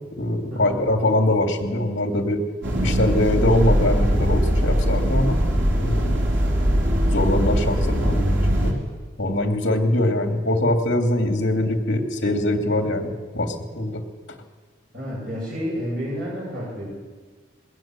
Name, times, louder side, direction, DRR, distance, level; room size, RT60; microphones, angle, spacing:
voice 1, 0.1-2.4 2.8-5.4 5.8-6.2 7.1-8.8 9.2-14.0, left 1 dB, 65° left, 4 dB, 2.8 m, -22 dB
sound 1, 2.6-8.7, equal, 70° right, 4.1 m, -21 dB
voice 2, 14.9-16.9, equal, 45° right, -7 dB, 7.8 m, -30 dB
21.0 x 18.0 x 7.7 m, 1.4 s
head